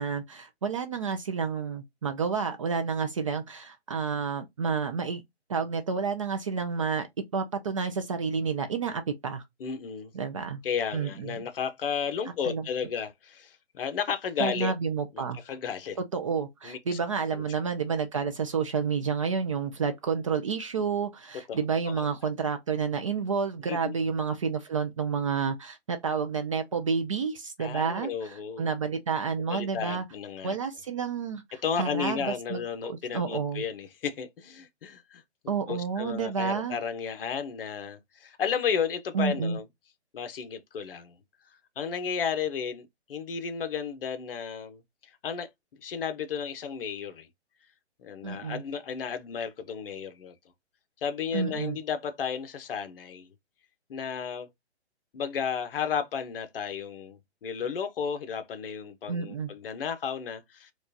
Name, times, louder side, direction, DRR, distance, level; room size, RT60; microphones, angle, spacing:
voice 1, 0.0-5.2 5.5-7.1 7.3-9.4 10.1-10.6 10.9-11.4 12.5-12.7 14.4-15.4 16.1-30.0 30.4-33.6 35.5-36.8 39.1-39.6 48.2-48.6 51.3-51.8 59.1-59.5, right 5 dB, 30° right, 0.4 m, -30 dB
voice 2, 9.6-10.1 10.6-14.7 15.1-16.0 16.6-17.0 17.3-17.4 21.5-21.6 21.9-22.1 23.7-23.9 27.6-28.7 29.5-30.6 31.5-35.2 35.7-39.6 40.1-41.1 41.8-45.5 45.8-47.3 48.0-50.3 51.0-53.3 53.9-54.5 55.1-60.7, left 7 dB, 55° left, 0.8 m, -33 dB
4.5 x 2.4 x 2.6 m
hypercardioid pair, 145°, 34 cm